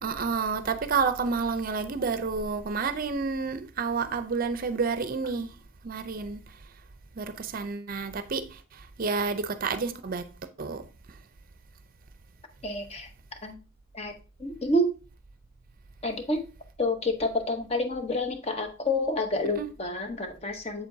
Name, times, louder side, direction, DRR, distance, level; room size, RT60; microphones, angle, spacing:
voice 1, 0.0-5.5 5.8-6.4 7.2-10.3 10.6-10.8 19.6-19.7, right 5 dB, 45° right, 0.5 m, -29 dB
voice 2, 12.6-13.1 13.4-13.6 13.9-14.1 14.4-14.9 16.0-16.4 16.8-20.9, left 1 dB, 30° left, 0.9 m, -28 dB
7.6 x 7.5 x 2.7 m
head